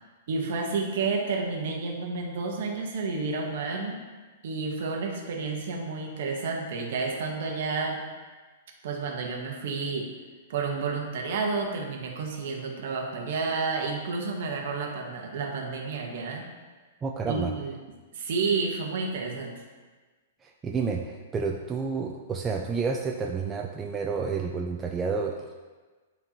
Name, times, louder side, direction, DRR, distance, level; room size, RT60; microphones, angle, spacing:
voice 1, 0.3-4.0 4.4-8.0 8.8-10.1 10.5-16.5 17.3-17.8 18.1-19.5, right 4 dB, 50° right, 1 dB, 1.2 m, -30 dB
voice 2, 17.0-17.5 20.4-25.4, right 5 dB, 10° right, 1 dB, 0.3 m, -30 dB
10.5 x 4.3 x 3.0 m, 1.3 s
hypercardioid pair, 170°, 0 cm